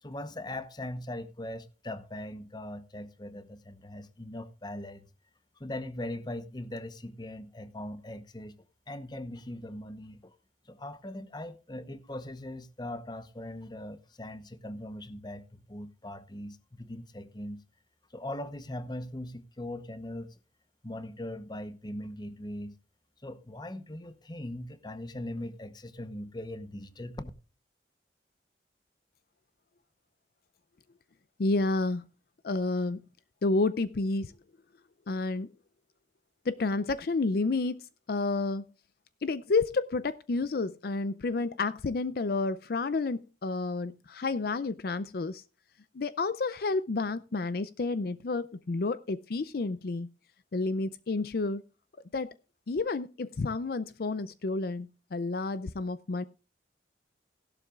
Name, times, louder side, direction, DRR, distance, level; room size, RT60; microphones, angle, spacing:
voice 1, 0.0-5.1 5.6-8.6 8.9-10.3 10.7-17.6 18.1-20.4 20.8-22.7 23.2-27.3, left 1 dB, 25° left, 0.9 m, -40 dB
voice 2, 31.4-32.0 32.4-33.1 33.4-34.3 35.1-35.5 36.5-37.8 38.1-38.6 39.2-45.4 45.9-50.1 50.5-51.6 52.1-52.3 52.7-56.2, left 3 dB, 55° left, 0.5 m, -30 dB
16.5 x 12.0 x 2.4 m
head